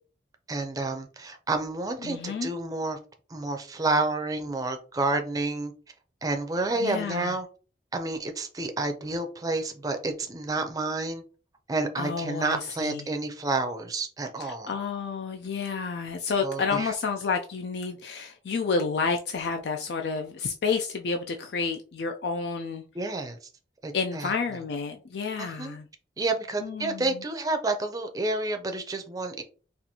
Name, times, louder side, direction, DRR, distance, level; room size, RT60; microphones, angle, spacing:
voice 1, 0.5-3.0 3.3-5.7 6.2-7.5 7.9-11.2 11.7-14.7 16.4-16.9 22.9-23.5 23.8-24.3 25.4-25.8 26.2-29.4, right 2 dB, 20° right, 0.5 m, -29 dB
voice 2, 2.0-2.5 6.8-7.4 12.0-13.0 14.7-22.8 23.9-25.9 26.6-27.2, left 5 dB, 70° left, 0.4 m, -30 dB
4.2 x 2.5 x 2.8 m
head